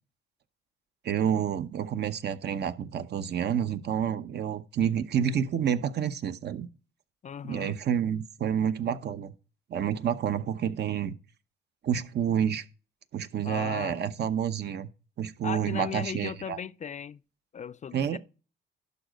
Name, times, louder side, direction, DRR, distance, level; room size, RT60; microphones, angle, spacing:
voice 1, 1.0-6.7 7.4-9.3 9.7-11.2 11.8-12.6 13.1-14.9 15.2-16.6 17.9-18.2, right 8 dB, 55° right, 0.8 m, -29 dB
voice 2, 7.2-7.8 13.4-14.0 15.4-17.2 17.5-18.2, left 7 dB, 35° left, 0.4 m, -37 dB
11.5 x 4.0 x 6.3 m
cardioid pair, 90°, 20 cm